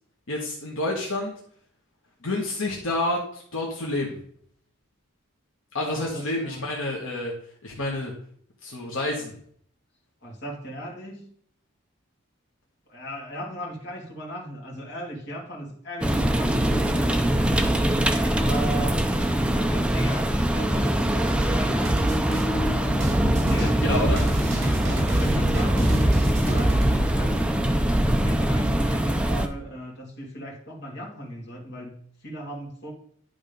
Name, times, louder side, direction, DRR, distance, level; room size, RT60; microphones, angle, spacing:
voice 1, 0.3-1.3 2.2-4.1 5.7-7.3 7.6-8.1 8.6-9.3 23.6-24.2, left 2 dB, 75° left, -3 dB, 1.5 m, -28 dB
voice 2, 5.8-6.7 10.2-11.3 12.9-17.4 18.2-19.0 19.5-22.5 23.5-23.8 25.1-27.5 28.2-32.9, equal, 55° left, -3 dB, 2.3 m, -37 dB
sound 1, 16.0-29.5, right 1 dB, 5° right, 0.5 m, -23 dB
sound 2, 21.8-27.0, right 1 dB, 55° right, 2.7 m, -26 dB
11.0 x 3.6 x 5.3 m, 0.62 s
head